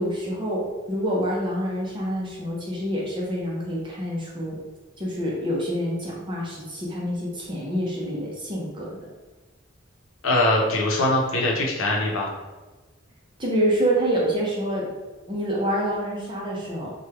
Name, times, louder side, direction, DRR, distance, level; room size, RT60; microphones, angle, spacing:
voice 1, 0.0-4.6 5.0-9.0 13.4-14.9 15.3-16.9, equal, 25° right, -4 dB, 0.7 m, -27 dB
voice 2, 10.2-12.3, left 1 dB, 85° left, -2 dB, 0.8 m, -22 dB
3.2 x 2.3 x 3.1 m, 1.3 s
head